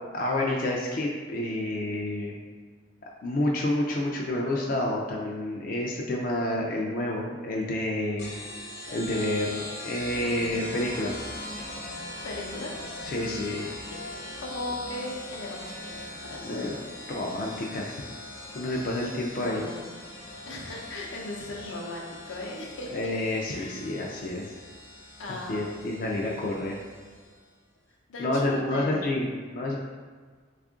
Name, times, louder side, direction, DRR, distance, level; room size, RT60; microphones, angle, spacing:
voice 1, 0.1-2.3 3.2-8.3 8.9-11.2 13.1-13.7 16.4-16.7 17.1-18.0 18.5-19.7 22.9-24.4 25.3-26.8 28.2-29.7, left 1 dB, 45° left, -1 dB, 0.3 m, -29 dB
sound 1, 8.2-27.3, left 1 dB, 70° left, 1.0 m, -41 dB
voice 2, 12.2-13.1 14.4-16.7 19.3-19.9 20.1-23.1 23.5-23.8 25.2-25.9 28.1-29.1, left 2 dB, 90° left, -1 dB, 0.7 m, -38 dB
3.5 x 2.4 x 3.6 m, 1.6 s
head